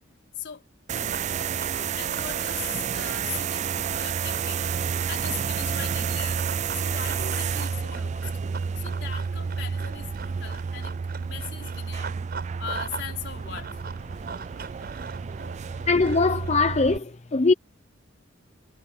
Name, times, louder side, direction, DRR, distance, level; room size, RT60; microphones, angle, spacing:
voice 1, 0.9-1.2 1.7-6.4 6.7-8.4 8.8-12.1 12.6-13.8 14.9-15.1, left 8 dB, 65° left, 3.6 m, -40 dB
sound 1, 0.9-17.0, right 6 dB, 35° right, 0.3 m, -30 dB
Run, 1.1-5.4 6.2-13.1 13.4-16.5, right 5 dB, 50° right, 6.9 m, -41 dB
voice 2, 15.9-17.5, left 3 dB, 35° left, 0.7 m, -21 dB
head